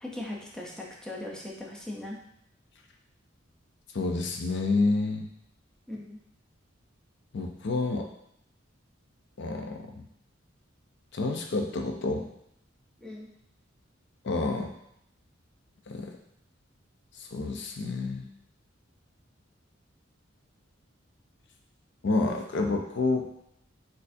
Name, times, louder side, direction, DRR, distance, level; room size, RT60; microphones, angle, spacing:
voice 1, 0.0-2.2 5.9-6.2 13.0-13.3, left 1 dB, 5° left, -3 dB, 0.6 m, -39 dB
voice 2, 3.9-5.3 7.3-8.1 9.4-10.0 11.1-12.3 14.2-14.7 15.9-16.1 17.1-18.3 22.0-23.3, left 3 dB, 60° left, 3 dB, 0.5 m, -29 dB
6.3 x 2.6 x 2.6 m, 0.74 s
head